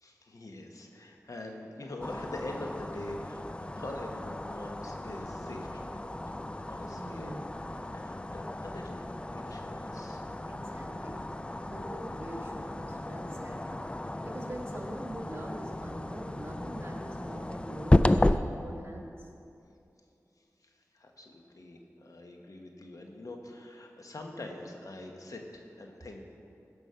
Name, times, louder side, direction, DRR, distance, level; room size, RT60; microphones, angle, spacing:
voice 1, 0.0-5.9 6.7-7.4 7.7-9.0 9.3-10.2 20.9-26.2, left 2 dB, 70° left, 2 dB, 1.2 m, -44 dB
sound 1, 2.0-18.4, left 1 dB, 20° left, 0.4 m, -33 dB
voice 2, 6.9-7.6 10.4-11.2 11.6-19.3, right 1 dB, 40° right, 0 dB, 1.7 m, -43 dB
16.0 x 5.4 x 5.6 m, 2.6 s
wide cardioid pair, 45°, 6 cm